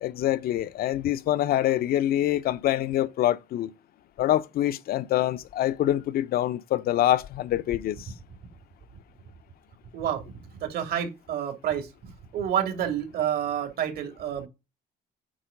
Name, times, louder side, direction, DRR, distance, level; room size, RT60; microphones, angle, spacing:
voice 1, 0.0-3.7 4.2-8.0, left 13 dB, 65° left, 0.7 m, -25 dB
voice 2, 10.6-11.9 12.3-14.5, right 9 dB, 65° right, 2.8 m, -28 dB
8.9 x 4.6 x 5.2 m
cardioid pair, 110°, 17 cm